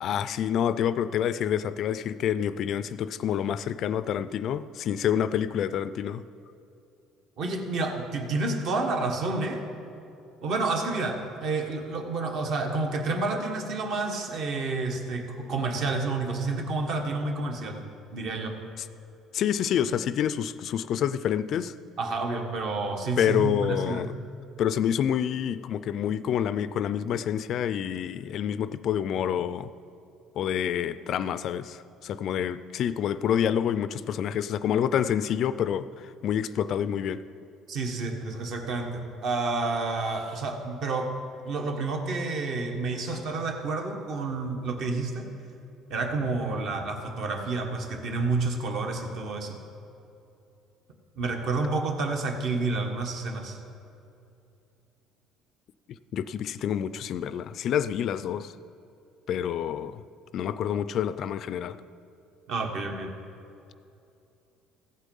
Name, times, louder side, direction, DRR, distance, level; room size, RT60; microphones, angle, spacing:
voice 1, 0.0-6.2 19.3-21.7 23.2-24.1 24.6-29.7 30.4-37.2 43.1-43.2 55.9-58.5 59.3-60.0 60.3-61.8, left 9 dB, 50° left, 14 dB, 0.3 m, -28 dB
voice 2, 7.4-9.6 10.4-17.8 18.1-18.6 22.0-24.1 37.7-41.2 41.4-45.3 45.9-49.6 51.2-53.6 62.5-63.1, right 3 dB, 55° right, 3 dB, 1.4 m, -29 dB
15.0 x 8.2 x 5.4 m, 2.7 s
cardioid pair, 140°, 0 cm